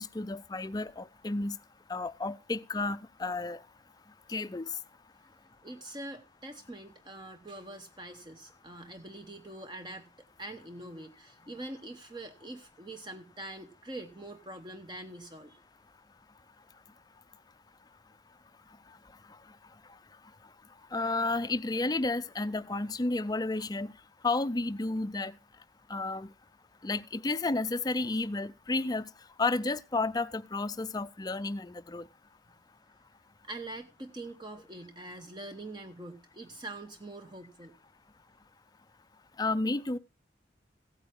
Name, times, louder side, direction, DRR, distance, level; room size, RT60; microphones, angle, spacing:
voice 1, 0.0-1.6 1.9-3.6 4.3-4.7 20.9-23.9 24.2-25.3 25.9-26.3 26.8-29.0 29.4-32.1 39.4-40.0, left 3 dB, 20° left, 0.5 m, -31 dB
voice 2, 5.6-10.1 10.4-15.6 33.4-37.7, right 2 dB, 25° right, 0.9 m, -44 dB
15.5 x 8.9 x 3.6 m
head